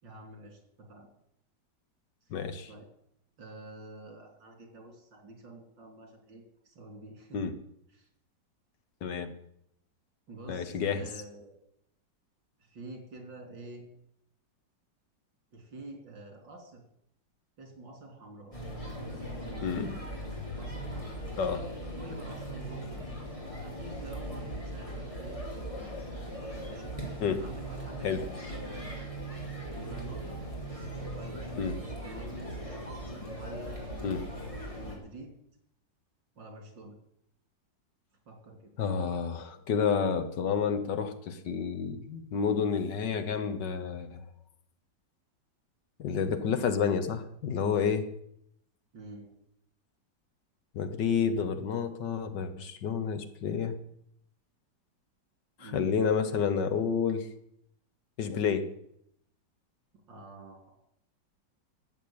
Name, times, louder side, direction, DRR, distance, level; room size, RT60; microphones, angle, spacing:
voice 1, 0.0-1.1 2.2-2.3 2.7-2.9 3.4-7.4 7.9-8.1 10.3-11.6 12.6-13.9 15.5-16.8 17.6-18.5 19.5-19.8 20.6-21.1 22.0-23.1 23.6-25.9 26.6-27.0 27.4-28.1 28.4-29.0 29.8-30.4 31.1-31.4 31.8-32.5 33.3-35.3 36.4-36.9 38.3-38.7 48.9-49.3 55.6-55.9 60.1-60.7, right 2 dB, 85° right, 2 dB, 4.0 m, -48 dB
voice 2, 2.3-2.7 7.3-7.5 9.0-9.3 10.5-11.1 19.6-20.0 21.4-21.6 25.7-26.0 27.2-27.4 28.0-28.2 31.6-31.8 34.0-34.2 38.8-44.2 46.0-48.0 50.7-53.8 55.6-57.3 58.2-58.7, left 6 dB, 70° left, 9 dB, 1.8 m, -30 dB
sound 1, 18.5-34.9, right 1 dB, 15° left, 3.7 m, -39 dB
13.5 x 8.3 x 8.7 m, 0.74 s
omnidirectional pair, 1.9 m